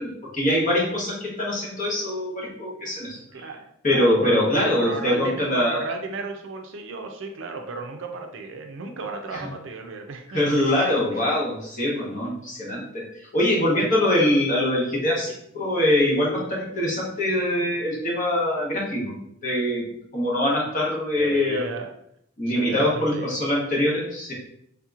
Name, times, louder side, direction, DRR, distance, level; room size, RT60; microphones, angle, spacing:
voice 1, 0.0-3.2 3.8-5.8 10.3-13.0 13.3-19.2 19.4-21.6 22.4-24.3, left 1 dB, 35° left, -4 dB, 1.0 m, -23 dB
voice 2, 3.1-10.4 11.1-11.3 13.8-13.9 15.3-15.4 21.2-21.9 22.5-23.4, right 3 dB, 60° right, 4 dB, 0.4 m, -34 dB
3.6 x 2.8 x 2.4 m, 0.73 s
head